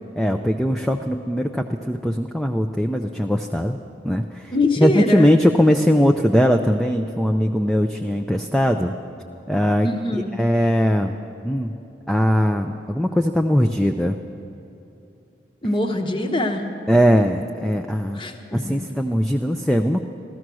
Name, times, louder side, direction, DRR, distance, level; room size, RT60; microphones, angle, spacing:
voice 1, 0.2-3.8 4.0-8.9 9.5-9.9 10.1-11.2 11.4-11.7 12.1-14.2 16.9-18.2 18.5-20.0, equal, ahead, 4 dB, 0.4 m, -20 dB
voice 2, 4.5-5.3 9.8-10.3 15.6-16.7 18.1-18.6, left 2 dB, 25° left, 4 dB, 1.0 m, -23 dB
14.5 x 14.0 x 6.2 m, 2.9 s
head